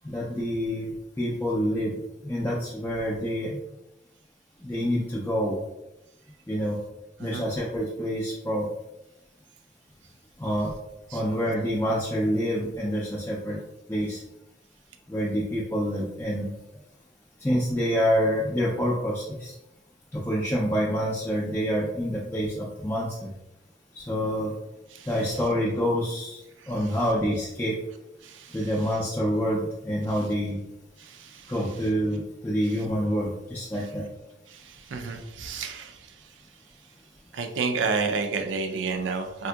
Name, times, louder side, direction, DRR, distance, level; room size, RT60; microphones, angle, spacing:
voice 1, 0.0-0.9 1.2-3.6 4.6-5.6 6.5-6.8 7.2-8.7 10.4-10.7 11.1-13.6 13.9-14.2 15.1-16.5 17.4-19.5 20.1-23.3 23.9-24.5 25.0-26.4 26.7-27.8 28.5-30.6 31.5-34.0, equal, 10° left, -6 dB, 0.4 m, -27 dB
voice 2, 34.9-35.9 37.3-39.5, right 4 dB, 70° right, 5 dB, 0.4 m, -29 dB
3.4 x 2.7 x 2.2 m, 0.91 s
head